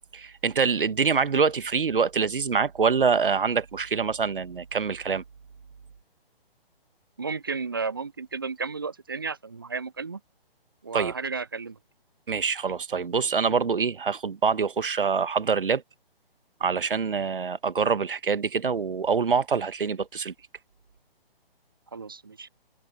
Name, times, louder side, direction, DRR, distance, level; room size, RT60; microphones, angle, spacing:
voice 1, 0.1-5.2 10.9-11.1 12.3-15.8 16.6-20.3, right 5 dB, 60° right, 1.4 m, -25 dB
voice 2, 7.2-10.2 10.8-11.8 21.9-22.5, right 4 dB, 25° right, 0.4 m, -33 dB
figure-of-eight pair, 135°, 30 cm